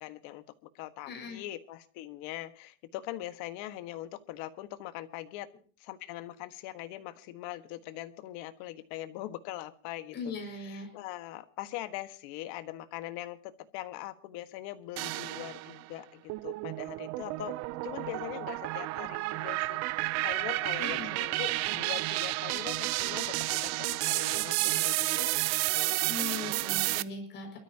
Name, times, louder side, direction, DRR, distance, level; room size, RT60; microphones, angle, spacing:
voice 1, 0.0-0.4 0.7-5.5 5.8-10.3 10.6-17.5 17.8-25.4 25.7-26.0, left 15 dB, 70° left, 10 dB, 1.6 m, -42 dB
voice 2, 1.1-1.4 10.1-10.9 20.8-21.1 26.1-27.6, left 4 dB, 35° left, 3 dB, 5.9 m, -39 dB
sound 1, 15.0-15.8 16.3-27.0, right 20 dB, 55° right, 0.7 m, -31 dB
27.5 x 13.5 x 2.9 m, 0.40 s
cardioid pair, 150°, 31 cm